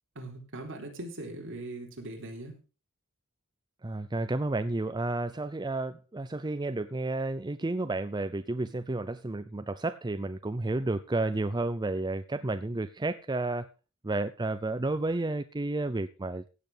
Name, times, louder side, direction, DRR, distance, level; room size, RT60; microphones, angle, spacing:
voice 1, 0.1-2.6, right 2 dB, 60° right, 1 dB, 4.1 m, -40 dB
voice 2, 3.8-13.7 14.0-16.4, right 2 dB, 20° right, 11 dB, 0.6 m, -31 dB
16.0 x 8.0 x 5.1 m, 0.33 s
head